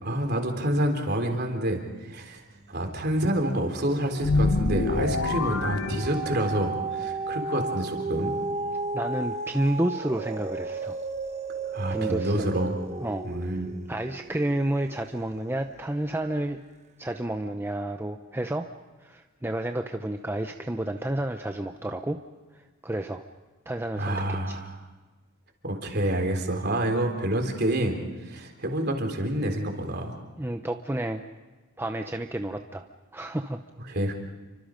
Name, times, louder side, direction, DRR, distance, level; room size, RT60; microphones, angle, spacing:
voice 1, 0.0-2.4 2.7-8.3 11.7-12.8 13.2-13.7 24.0-24.7 25.6-30.1 33.9-34.1, right 1 dB, 50° right, 3 dB, 3.7 m, -28 dB
sound 1, 2.5-3.0 3.4-15.9 16.4-16.5, right 3 dB, 30° right, 1.1 m, -34 dB
sound 2, 4.2-6.7, left 3 dB, 85° left, 1.0 m, -26 dB
voice 2, 8.9-11.0 11.9-12.5 13.0-13.6 13.9-16.6 17.0-18.7 19.0-22.2 22.8-23.2 23.7-24.6 30.4-31.2 31.8-32.8 33.1-33.6, right 1 dB, 10° right, 5 dB, 0.7 m, -30 dB
29.5 x 25.0 x 5.2 m, 1.3 s
head